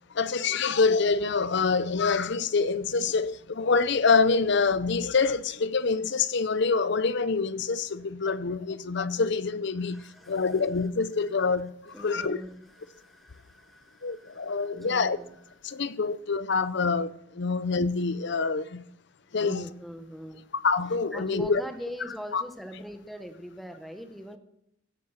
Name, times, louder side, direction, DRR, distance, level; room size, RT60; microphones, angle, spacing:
voice 1, 0.1-12.4 14.0-15.2 15.6-18.9 19.3-19.7 20.6-21.6 22.3-22.4, left 4 dB, 55° left, 0.6 m, -26 dB
voice 2, 9.8-10.5 11.9-15.4 15.7-15.8 19.4-20.5 21.1-24.4, equal, ahead, 1.1 m, -42 dB
16.0 x 8.4 x 5.8 m
head